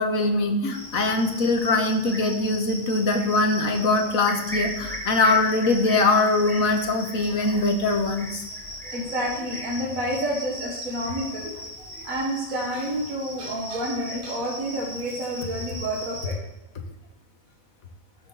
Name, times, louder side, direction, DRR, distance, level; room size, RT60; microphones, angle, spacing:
voice 1, 0.0-8.4, left 2 dB, 80° left, 6 dB, 1.8 m, -22 dB
Cricket, 0.7-16.3, equal, ahead, 2.5 m, -38 dB
voice 2, 8.8-16.3, equal, 75° right, -2 dB, 2.1 m, -29 dB
13.0 x 8.4 x 4.0 m, 0.96 s
omnidirectional pair, 1.4 m